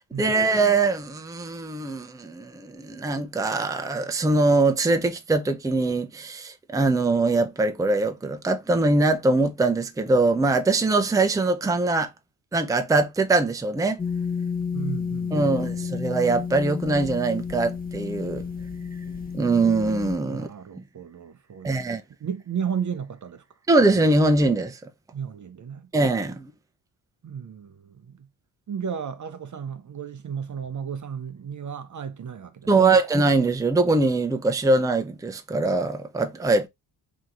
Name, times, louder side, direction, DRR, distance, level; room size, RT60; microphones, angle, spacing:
voice 1, 0.2-12.1 12.5-14.0 15.3-18.4 19.3-20.5 21.6-22.0 23.7-24.8 25.9-26.5 32.7-36.7, right 3 dB, 10° right, 0.6 m, -22 dB
sound 1, 14.0-20.2, left 6 dB, 20° left, 0.9 m, -31 dB
voice 2, 14.7-15.7 20.3-21.8 22.2-23.4 25.1-25.9 27.2-28.3 28.7-33.0, right 7 dB, 40° right, 0.7 m, -34 dB
3.6 x 2.9 x 3.8 m
cardioid pair, 60°, 44 cm